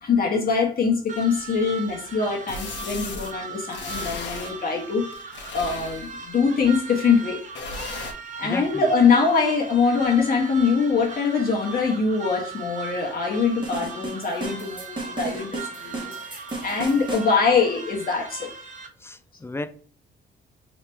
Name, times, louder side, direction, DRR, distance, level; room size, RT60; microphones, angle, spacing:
voice 1, 0.0-7.4 8.4-15.5 15.8-18.5, left 5 dB, 50° left, 1.2 m, -23 dB
sound 1, 1.1-18.9, right 5 dB, 40° right, 0.8 m, -39 dB
sound 2, 1.3-1.4 2.5-3.3 3.7-4.5 5.1-6.3 7.5-8.1, left 3 dB, 65° left, 0.9 m, -35 dB
voice 2, 8.4-8.9 10.2-10.3 19.0-19.7, left 2 dB, 10° left, 0.5 m, -34 dB
sound 3, 13.6-17.3, right 2 dB, 25° right, 1.4 m, -34 dB
3.2 x 2.9 x 3.3 m
cardioid pair, 90°, 20 cm